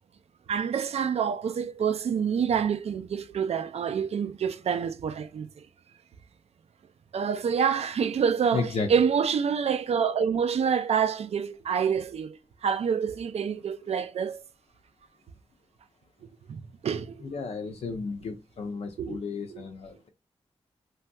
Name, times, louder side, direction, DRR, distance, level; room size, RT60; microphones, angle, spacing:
voice 1, 0.5-5.5 7.1-12.4 12.6-14.4 16.5-17.2 19.0-19.2 19.5-19.6, right 7 dB, 65° right, 0.4 m, -27 dB
voice 2, 8.5-8.9 17.3-20.1, left 4 dB, 65° left, 0.5 m, -33 dB
3.3 x 2.6 x 2.2 m
cardioid pair, 70°, 11 cm